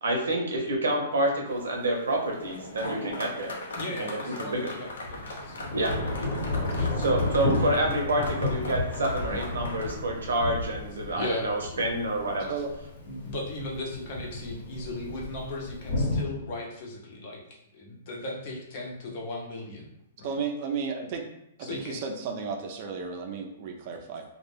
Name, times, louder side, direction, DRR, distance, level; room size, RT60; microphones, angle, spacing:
voice 1, 0.0-3.5 4.0-4.7 5.7-5.9 7.0-12.5, right 1 dB, 90° right, 1 dB, 0.6 m, -28 dB
Thunder / Rain, 1.5-1.6 4.5-16.2, left 2 dB, 65° left, 1.0 m, -32 dB
sound 1, 2.4-9.9, left 1 dB, 85° left, 0.6 m, -39 dB
voice 2, 3.7-7.1 7.6-7.7 11.1-11.9 12.4-12.6 13.0-19.9 20.2-20.4 21.6-22.0, left 2 dB, 45° left, -1 dB, 0.6 m, -37 dB
voice 3, 20.2-21.2 21.6-24.2, right 5 dB, 45° right, 4 dB, 0.4 m, -33 dB
2.2 x 2.1 x 3.1 m, 0.79 s
hypercardioid pair, 150°, 0 cm